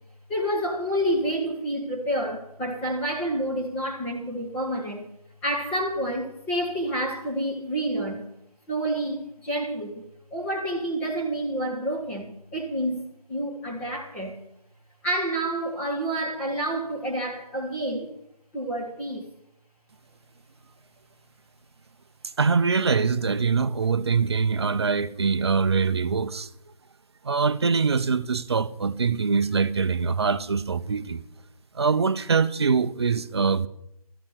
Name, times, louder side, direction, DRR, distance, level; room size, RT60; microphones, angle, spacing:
voice 1, 0.3-5.1 5.4-8.3 8.7-10.0 10.3-14.4 15.0-18.1 18.5-19.3, right 1 dB, 5° left, 1.3 m, -29 dB
voice 2, 22.4-26.5 27.2-31.2 31.7-33.7, right 5 dB, 45° right, 0.7 m, -23 dB
13.5 x 7.3 x 9.2 m
figure-of-eight pair, 155°, 19 cm